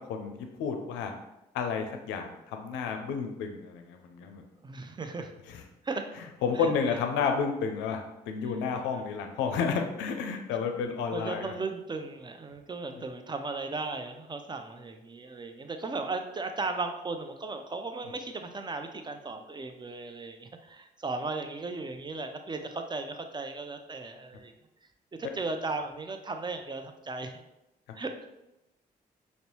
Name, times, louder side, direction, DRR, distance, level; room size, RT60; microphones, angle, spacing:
voice 1, 0.1-1.1 1.5-4.4 6.4-11.5 12.9-13.0, left 6 dB, 80° left, 5 dB, 0.5 m, -31 dB
voice 2, 4.6-5.3 5.8-6.0 6.6-6.7 11.1-24.5 25.2-27.3 27.9-28.1, right 3 dB, 25° right, 6 dB, 0.5 m, -36 dB
5.2 x 2.1 x 2.9 m, 0.92 s
hypercardioid pair, 40°, 19 cm